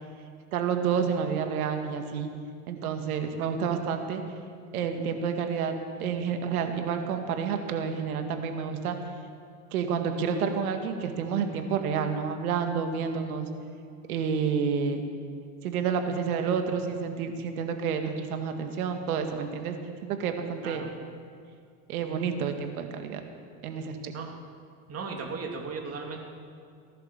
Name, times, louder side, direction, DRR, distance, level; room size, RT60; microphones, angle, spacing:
voice 1, 0.5-2.3 2.7-4.2 4.7-9.0 9.7-13.5 14.1-15.0 15.6-19.8 20.0-20.8 21.9-23.2 23.6-24.1, right 6 dB, 85° right, 6 dB, 2.0 m, -29 dB
voice 2, 24.9-26.2, right 4 dB, 35° right, 2 dB, 2.8 m, -36 dB
17.5 x 11.5 x 7.1 m, 2.3 s
supercardioid pair, 110°, 43 cm